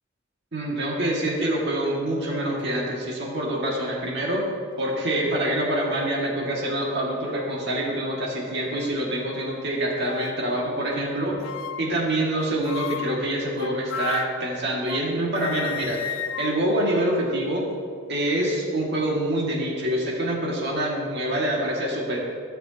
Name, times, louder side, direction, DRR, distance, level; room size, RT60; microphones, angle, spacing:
voice 1, 0.5-4.4 4.8-11.4 11.8-17.7 18.1-22.2, right 1 dB, 55° right, -3 dB, 1.9 m, -26 dB
sound 1, 1.9-2.0 2.3-2.7 3.4-3.5 4.8-5.5 6.0-6.1 6.6-6.7 7.3-7.6 8.3-9.0 10.0-10.5 11.4-12.0 12.6-15.1 15.4-17.7, left 7 dB, 65° left, 0.3 m, -36 dB
13.5 x 6.6 x 2.9 m, 2.2 s
head